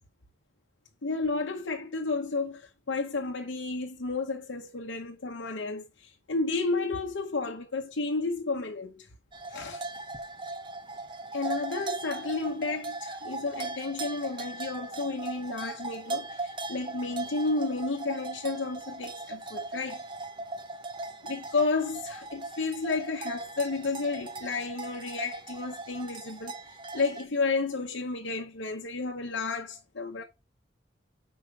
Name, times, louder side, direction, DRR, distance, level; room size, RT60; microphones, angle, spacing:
voice 1, 1.0-9.1 9.5-9.8 11.3-20.0 21.2-30.2, left 3 dB, 75° left, 0.9 m, -32 dB
sound 1, 9.3-27.2, right 3 dB, 25° right, 0.6 m, -39 dB
5.6 x 4.7 x 4.7 m
head